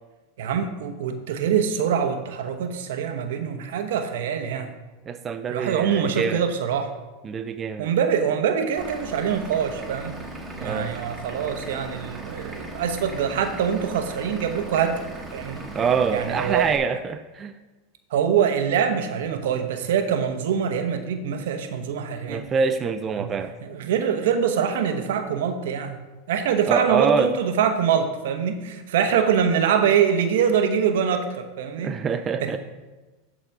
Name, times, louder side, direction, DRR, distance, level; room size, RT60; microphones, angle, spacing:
voice 1, 0.4-4.7 5.5-6.9 7.8-10.2 10.6-15.6 16.1-16.7 18.1-22.5 23.2-23.3 23.6-26.0 26.3-32.0 32.4-32.6, right 7 dB, 75° right, 7 dB, 1.0 m, -24 dB
voice 2, 5.1-6.4 7.2-7.9 10.6-10.9 15.7-17.5 22.3-23.5 26.7-27.3 31.8-32.6, right 6 dB, 30° right, 8 dB, 0.5 m, -25 dB
Vehicle / Engine, 8.8-16.8, right 2 dB, 10° right, 1.8 m, -38 dB
12.0 x 4.1 x 4.6 m, 1.2 s
hypercardioid pair, 110°, 0 cm